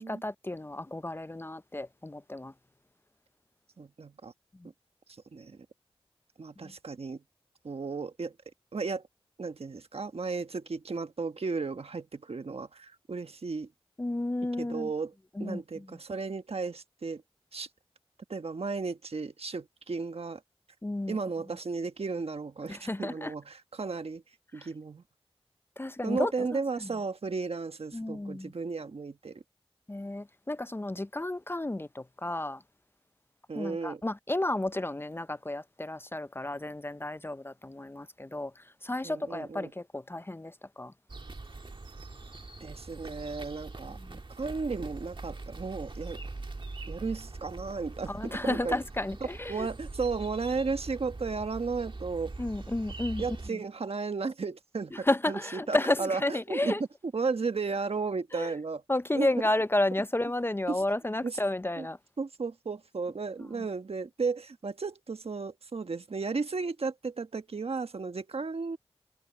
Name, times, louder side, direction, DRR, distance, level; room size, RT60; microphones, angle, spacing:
voice 1, 0.0-2.5 4.6-4.7 6.6-6.7 14.0-14.9 15.4-16.0 20.8-21.2 22.7-23.3 24.6-24.7 25.8-26.9 27.9-28.5 29.9-32.6 33.5-40.9 44.0-44.2 48.1-49.7 52.4-53.2 53.5-53.6 54.9-56.8 58.3-58.5 58.9-62.0, left 1 dB, 20° left, 0.5 m, -32 dB
voice 2, 3.8-4.3 5.3-5.6 6.4-7.2 7.6-8.3 8.7-9.1 9.4-13.7 14.6-15.1 15.4-17.2 17.5-17.7 18.3-20.4 21.1-24.2 24.5-25.0 26.0-29.4 33.5-34.0 39.0-39.7 42.6-44.0 44.4-46.2 46.9-48.8 49.5-52.3 53.2-56.8 57.1-58.8 59.1-59.3 60.7-60.8 61.2-61.4 61.8-61.9 62.2-68.8, right 4 dB, 75° right, 1.3 m, -34 dB
sound 1, 41.1-53.5, right 3 dB, 55° right, 1.5 m, -42 dB
cardioid pair, 45°, 10 cm